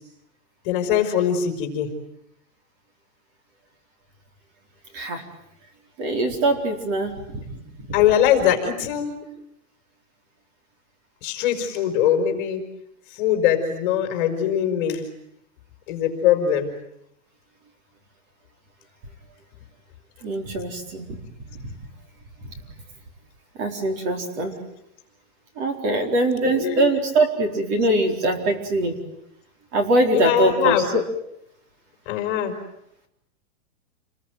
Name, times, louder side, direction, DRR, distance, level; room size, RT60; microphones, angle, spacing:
voice 1, 0.7-1.9 7.9-9.2 11.2-12.6 13.2-15.0 15.9-16.7 26.4-26.8 30.1-30.8 32.1-32.5, left 10 dB, 35° left, 6 dB, 4.6 m, -21 dB
voice 2, 6.0-7.6 20.2-21.2 23.6-24.6 25.6-28.9 29.7-31.0, right 1 dB, 30° right, 4 dB, 4.4 m, -22 dB
29.5 x 22.0 x 9.2 m, 0.78 s
hypercardioid pair, 165°, 42 cm